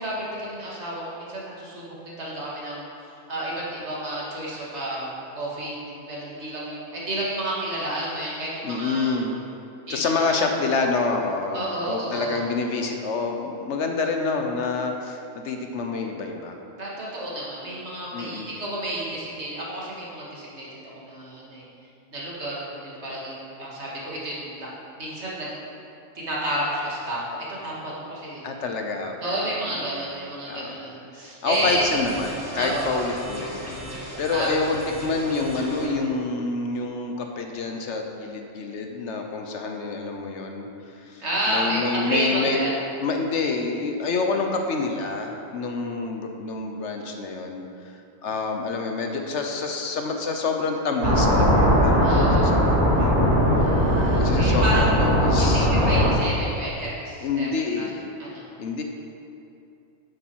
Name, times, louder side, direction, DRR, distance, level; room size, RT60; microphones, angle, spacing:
voice 1, 0.0-2.9 3.3-9.1 9.9-10.4 11.5-12.4 16.8-21.6 22.1-25.5 26.2-28.5 29.2-31.9 32.5-33.1 34.3-34.7 41.2-42.7 52.0-52.4 53.6-54.9 55.4-57.5 57.8-57.9 58.2-58.4, right 1 dB, 70° right, -5 dB, 2.4 m, -31 dB
voice 2, 8.6-9.3 9.9-16.6 18.1-18.5 28.4-30.0 30.5-30.8 31.2-40.7 41.0-42.6 43.0-47.6 48.2-53.1 54.2-56.2 57.2-58.0 58.6-58.8, left 4 dB, 75° left, 3 dB, 1.2 m, -27 dB
sound 1, 31.5-35.9, equal, 10° left, 2.6 m, -37 dB
sound 2, 51.0-56.1, equal, 90° right, 2.6 m, -19 dB
9.8 x 8.3 x 4.7 m, 2.7 s
omnidirectional pair, 1.2 m